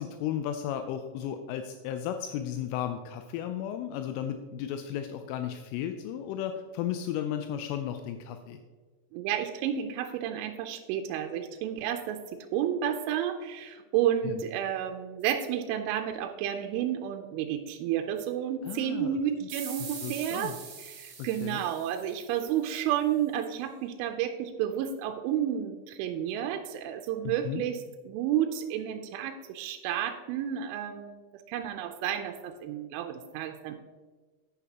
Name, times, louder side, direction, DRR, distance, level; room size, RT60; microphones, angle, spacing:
voice 1, 0.0-8.6 14.2-14.4 18.6-19.5 20.0-20.6 21.2-21.6 27.3-27.6, left 10 dB, 85° left, 7 dB, 3.1 m, -34 dB
voice 2, 9.1-33.8, right 10 dB, 85° right, 5 dB, 2.9 m, -31 dB
sound 1, 19.5-22.8, right 6 dB, 60° right, 2.3 m, -43 dB
10.0 x 9.8 x 2.9 m, 1.4 s
omnidirectional pair, 5.8 m